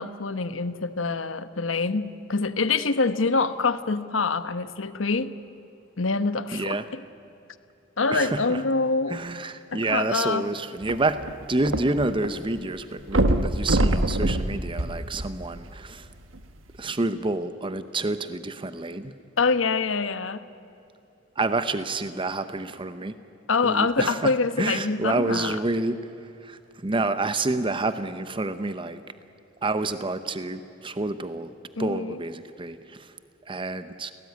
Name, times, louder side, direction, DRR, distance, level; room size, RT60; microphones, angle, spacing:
voice 1, 0.0-5.3 6.0-7.0 8.0-9.2 9.7-10.5 19.4-20.5 23.5-25.6 31.8-32.2, left 4 dB, 85° left, 12 dB, 1.2 m, -25 dB
voice 2, 6.5-6.9 8.1-8.6 9.1-16.1 16.8-19.1 21.4-23.1 23.6-26.1 26.4-29.0 29.6-31.5 31.8-33.1 33.5-34.1, right 2 dB, 25° right, 11 dB, 0.8 m, -28 dB
sound 1, 10.8-12.3 12.6-12.7 13.1-15.7 16.4-16.5, right 1 dB, 85° right, 1.4 m, -24 dB
29.5 x 18.0 x 9.5 m, 2.8 s
head